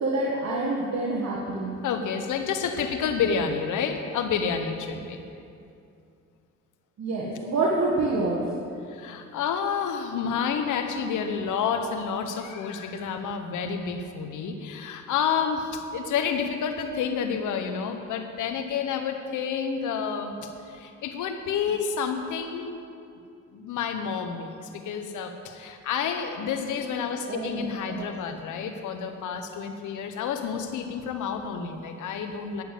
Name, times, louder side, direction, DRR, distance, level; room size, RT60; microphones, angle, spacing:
voice 1, 0.0-1.8 7.0-8.4 27.3-28.0, right 2 dB, 60° right, -4 dB, 1.8 m, -27 dB
voice 2, 1.8-5.2 8.9-22.8 23.5-32.6, left 6 dB, 80° left, 6 dB, 1.3 m, -29 dB
10.5 x 8.8 x 7.5 m, 2.5 s
cardioid pair, 90°, 30 cm